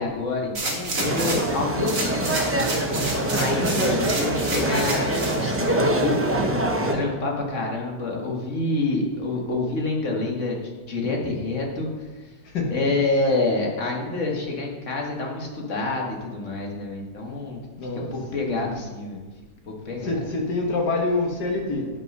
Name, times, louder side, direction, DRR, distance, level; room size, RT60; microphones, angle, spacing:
voice 1, 0.0-2.7 3.3-10.6 10.9-11.9 12.2-12.3 12.7-17.6 18.0-19.2 19.7-20.2, left 2 dB, 50° left, 0 dB, 1.7 m, -27 dB
sound 1, 0.5-1.5 1.8-5.4 5.9-6.0, right 2 dB, 55° right, 2.0 m, -30 dB
sound 2, 1.0-6.9, right 1 dB, 20° right, 0.3 m, -24 dB
voice 2, 12.4-12.8 17.8-18.1 18.4-18.7 20.0-21.9, left 3 dB, 75° left, 1 dB, 1.9 m, -26 dB
9.4 x 5.4 x 5.4 m, 1.3 s
omnidirectional pair, 1.8 m